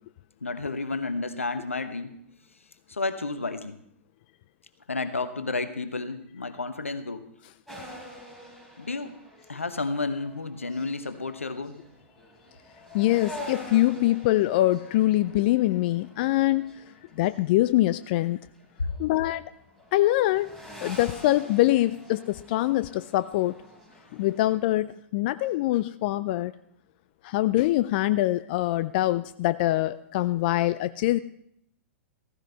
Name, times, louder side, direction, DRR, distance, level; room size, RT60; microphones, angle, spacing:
voice 1, 0.4-2.1 2.9-3.8 4.9-7.3 8.8-9.2 9.5-11.8 18.8-18.9, left 3 dB, 85° left, 10 dB, 1.0 m, -31 dB
sound 1, 7.7-17.4 17.8-19.5 19.8-24.5, equal, ahead, 4.3 m, -46 dB
voice 2, 12.9-16.7 17.2-18.4 19.0-19.4 19.9-20.5 20.8-23.6 24.1-26.5 27.2-31.2, left 16 dB, 45° left, 14 dB, 0.4 m, -24 dB
15.0 x 15.0 x 3.4 m, 0.73 s
figure-of-eight pair, 105°, 7 cm